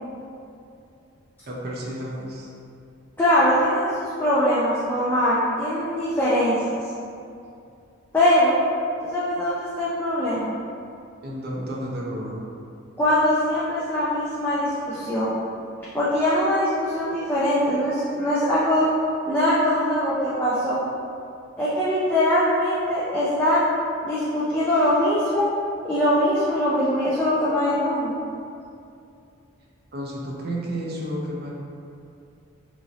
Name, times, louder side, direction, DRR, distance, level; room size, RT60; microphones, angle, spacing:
voice 1, 1.5-2.5 11.2-12.5 29.9-31.6, right 1 dB, 50° right, -3 dB, 0.6 m, -31 dB
voice 2, 3.2-6.8 8.1-8.5 9.0-10.5 13.0-15.3 15.9-18.9 19.3-20.8 21.6-23.6 24.0-25.5 25.8-28.1, left 1 dB, 10° left, -10 dB, 0.4 m, -22 dB
3.0 x 2.5 x 3.9 m, 2.5 s
head